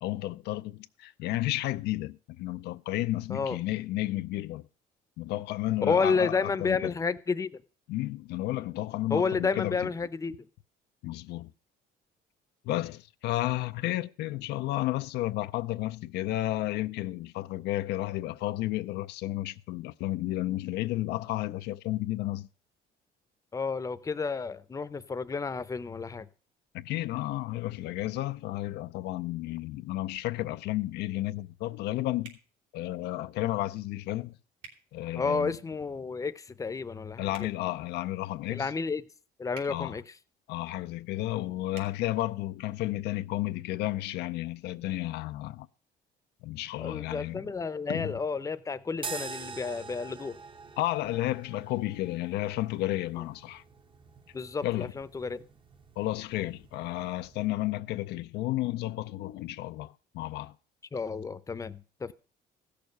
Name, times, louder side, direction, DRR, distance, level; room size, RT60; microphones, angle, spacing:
voice 1, 0.0-4.7 5.2-6.9 7.9-9.9 11.0-11.5 12.6-22.5 26.7-32.4 32.7-34.3 34.9-35.5 37.2-38.7 39.7-40.0 40.5-45.7 46.4-47.5 47.9-48.2 50.8-53.6 54.6-54.9 56.0-60.5, left 16 dB, 80° left, 0.5 m, -32 dB
voice 2, 5.8-7.5 9.1-10.3 23.5-26.3 35.1-37.5 38.5-39.0 39.4-40.0 46.8-50.4 54.3-55.4 60.9-62.1, left 4 dB, 20° left, 0.7 m, -31 dB
sound 1, 32.2-32.4 34.6-34.8 37.3-37.5 39.5-39.7 41.7-41.9, right 6 dB, 80° right, 3.1 m, -48 dB
sound 2, 49.0-57.5, right 5 dB, 30° right, 0.8 m, -46 dB
15.0 x 6.7 x 5.3 m
cardioid pair, 110°, 17 cm